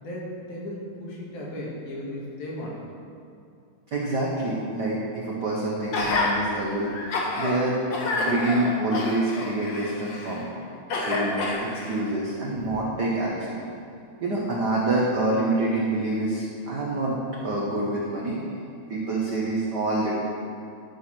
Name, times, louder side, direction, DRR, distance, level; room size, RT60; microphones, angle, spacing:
voice 1, 0.0-2.8, left 1 dB, 75° left, -4 dB, 3.1 m, -35 dB
voice 2, 3.9-6.9 7.4-7.8 8.1-10.5 11.0-13.6 14.2-17.2 17.4-18.4 18.9-20.2, right 2 dB, 75° right, -5 dB, 0.9 m, -26 dB
Gasp, 5.9-6.3 6.9-7.5 7.9-10.4 10.9-12.0 12.6-12.7, left 2 dB, 55° left, 1.3 m, -28 dB
12.5 x 6.2 x 4.4 m, 2.5 s
omnidirectional pair, 3.5 m